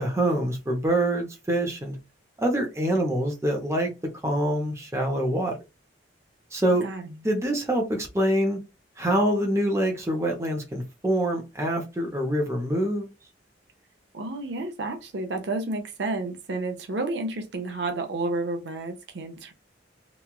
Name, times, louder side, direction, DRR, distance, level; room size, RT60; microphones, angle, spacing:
voice 1, 0.0-2.0 2.4-3.9 4.2-5.5 6.5-6.8 7.2-8.6 9.0-13.1, right 1 dB, 15° right, 0.7 m, -25 dB
voice 2, 14.1-19.5, right 2 dB, 65° right, 0.6 m, -31 dB
3.0 x 2.3 x 2.3 m
head